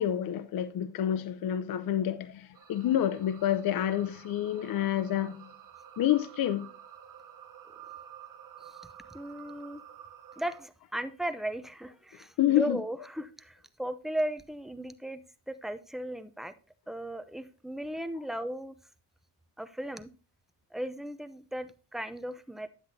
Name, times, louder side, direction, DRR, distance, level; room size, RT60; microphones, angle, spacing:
voice 1, 0.0-5.4 6.0-6.7 12.4-12.8, left 11 dB, 50° left, 0.7 m, -28 dB
sound 1, 2.5-10.6, right 9 dB, 45° right, 0.9 m, -51 dB
voice 2, 9.1-9.8 10.4-15.2 15.5-16.5 16.9-18.8 19.6-20.1 20.7-22.7, right 1 dB, ahead, 0.5 m, -36 dB
10.0 x 7.8 x 2.7 m
cardioid pair, 80°, 44 cm